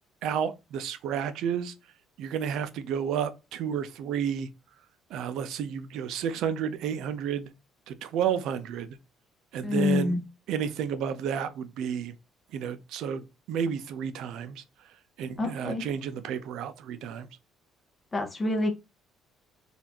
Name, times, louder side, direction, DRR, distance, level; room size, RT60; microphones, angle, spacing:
voice 1, 0.2-1.7 2.2-4.5 5.1-7.5 7.9-9.0 9.5-10.2 10.5-12.1 12.5-14.6 15.2-17.3, right 8 dB, 65° right, 0.5 m, -31 dB
voice 2, 9.6-10.2 15.4-15.9 18.1-18.7, left 3 dB, 15° left, 0.7 m, -27 dB
4.0 x 2.5 x 2.8 m
cardioid pair, 175°, 0 cm